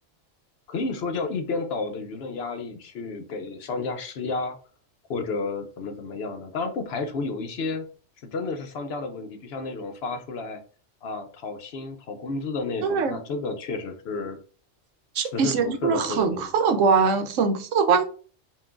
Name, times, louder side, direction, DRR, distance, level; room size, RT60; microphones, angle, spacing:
voice 1, 0.7-4.5 5.1-7.9 8.3-10.6 11.0-14.4 15.2-16.5, left 3 dB, 65° left, 0.8 m, -31 dB
voice 2, 12.8-13.2 15.2-18.1, right 5 dB, 85° right, 1.0 m, -22 dB
5.5 x 2.5 x 2.4 m
omnidirectional pair, 1.3 m